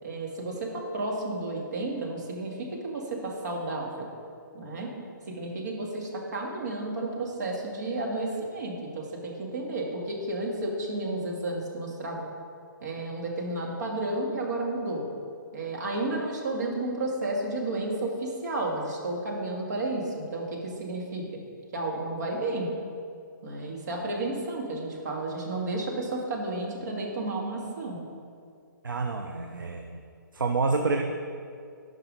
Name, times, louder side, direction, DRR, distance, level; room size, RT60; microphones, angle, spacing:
voice 1, 0.0-4.1 4.5-4.9 5.3-12.3 12.8-15.1 15.5-21.4 21.7-22.7 23.4-28.0, right 2 dB, 55° right, -1 dB, 2.1 m, -32 dB
voice 2, 28.8-30.0 30.3-31.0, right 3 dB, 75° right, 4 dB, 0.7 m, -28 dB
11.0 x 5.4 x 5.2 m, 2.3 s
figure-of-eight pair, 135°, 11 cm